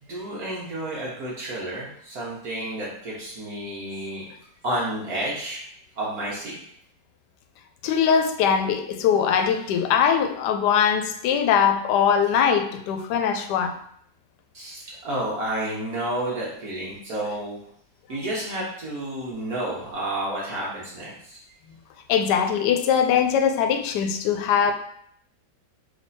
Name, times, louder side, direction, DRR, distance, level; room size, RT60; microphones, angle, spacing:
voice 1, 0.0-4.3 4.6-5.6 6.0-6.5 14.5-17.6 18.1-21.4, right 1 dB, 60° right, -6 dB, 1.4 m, -30 dB
voice 2, 7.8-13.7 22.1-24.7, left 7 dB, 80° left, 6 dB, 1.1 m, -21 dB
3.4 x 3.3 x 4.0 m, 0.66 s
omnidirectional pair, 1.8 m